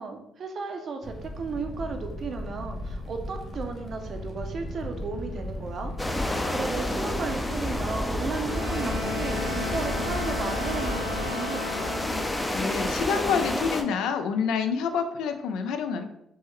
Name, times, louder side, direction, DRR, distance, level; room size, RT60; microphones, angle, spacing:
voice 1, 0.0-6.1 6.5-11.7, right 4 dB, 55° right, 5 dB, 0.5 m, -34 dB
Fire, 1.0-11.3, left 1 dB, 50° left, 0.7 m, -37 dB
sound 1, 6.0-13.8, left 1 dB, 10° left, 0.4 m, -30 dB
Wind instrument woodwind instrument, 8.4-12.4, left 3 dB, 75° right, 1.2 m, -35 dB
voice 2, 12.5-16.0, left 6 dB, 90° left, 7 dB, 0.3 m, -27 dB
3.5 x 2.1 x 3.1 m, 0.82 s
cardioid pair, 90°, 0 cm